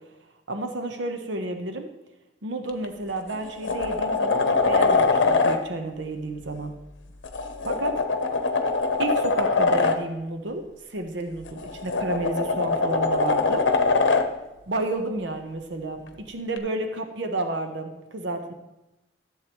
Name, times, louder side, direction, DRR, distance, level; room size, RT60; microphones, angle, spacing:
voice 1, 0.5-1.9 2.4-6.7 7.6-8.0 9.0-13.7 14.7-18.5, right 2 dB, 70° right, 6 dB, 0.8 m, -31 dB
sound 1, 2.7-2.9 3.3-5.6 7.2-10.0 11.5-14.3 16.6-16.7, left 4 dB, 80° left, 0.8 m, -23 dB
14.0 x 7.5 x 3.0 m, 0.97 s
head